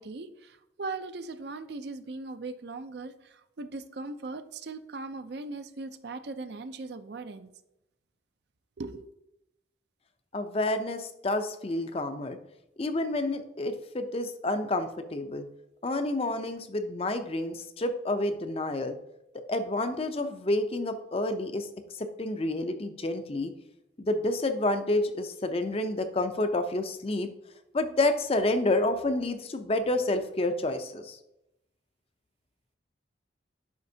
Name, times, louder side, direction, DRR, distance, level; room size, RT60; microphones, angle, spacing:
voice 1, 0.0-7.5 8.8-9.1, right 3 dB, 60° right, 11 dB, 0.5 m, -39 dB
voice 2, 10.3-12.4 12.8-15.5 15.8-19.0 19.5-21.7 22.0-23.5 24.0-27.3 27.7-31.2, left 2 dB, 30° left, 8 dB, 0.5 m, -29 dB
9.5 x 5.8 x 2.7 m, 0.86 s
head